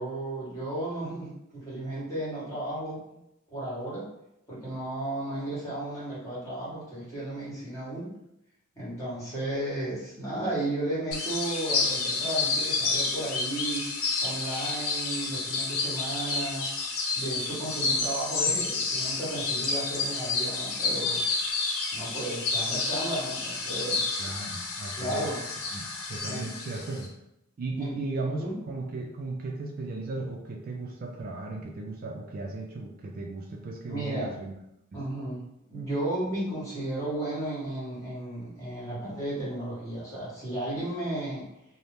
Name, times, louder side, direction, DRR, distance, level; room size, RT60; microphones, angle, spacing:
voice 1, 0.0-3.0 3.5-4.1 4.5-8.1 8.7-13.9 14.2-16.7 17.1-21.2 21.9-24.1 25.0-25.4 26.3-26.5 27.8-27.9 28.4-28.5 33.9-34.3 34.9-41.5, right 1 dB, 15° left, -9 dB, 1.3 m, -34 dB
sound 1, 11.1-27.1, left 3 dB, 75° left, 0.5 m, -30 dB
voice 2, 24.2-25.3 25.7-27.1 27.6-34.5 34.9-35.0, right 2 dB, 45° right, 0 dB, 0.3 m, -36 dB
2.7 x 2.0 x 3.3 m, 0.83 s
head